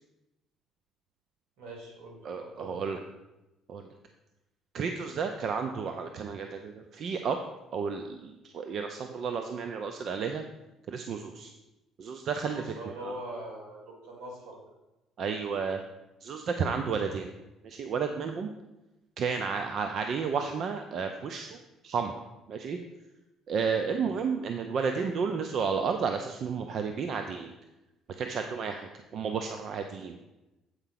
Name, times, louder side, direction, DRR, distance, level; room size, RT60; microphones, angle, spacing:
voice 1, 1.6-3.0 12.4-14.6 16.9-17.1, right 1 dB, 80° right, -1 dB, 3.3 m, -43 dB
voice 2, 2.2-3.0 3.7-3.9 4.7-7.4 7.7-10.4 10.9-11.5 12.0-12.7 13.0-13.1 15.2-15.8 16.2-17.3 17.6-18.5 19.2-21.6 21.8-22.1 22.5-22.8 23.5-27.5 28.1-30.1, right 5 dB, 50° right, 6 dB, 0.6 m, -32 dB
8.0 x 4.7 x 5.8 m, 0.99 s
cardioid pair, 115°, 0 cm